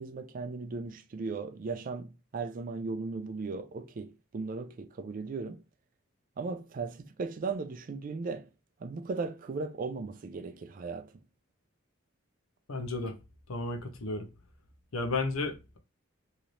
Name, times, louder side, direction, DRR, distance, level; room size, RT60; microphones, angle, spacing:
voice 1, 0.0-5.6 6.4-8.5 8.8-11.1, right 4 dB, 40° right, 0.3 m, -37 dB
voice 2, 12.7-13.2 13.5-14.3 14.9-15.8, left 3 dB, 75° left, 0.7 m, -33 dB
3.1 x 2.8 x 2.5 m
head